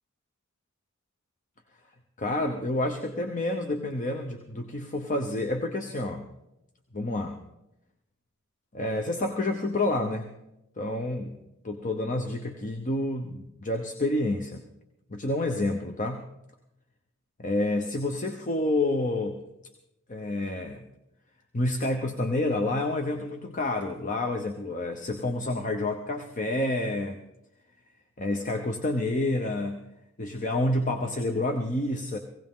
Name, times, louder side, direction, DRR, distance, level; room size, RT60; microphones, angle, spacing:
voice 1, 2.2-6.3 6.9-7.4 8.7-10.3 10.8-14.6 15.1-16.3 17.4-19.4 20.1-20.8 21.5-27.2 28.2-29.8 30.2-32.2, left 2 dB, 40° left, 5 dB, 0.9 m, -29 dB
18.5 x 16.5 x 3.7 m, 0.87 s
head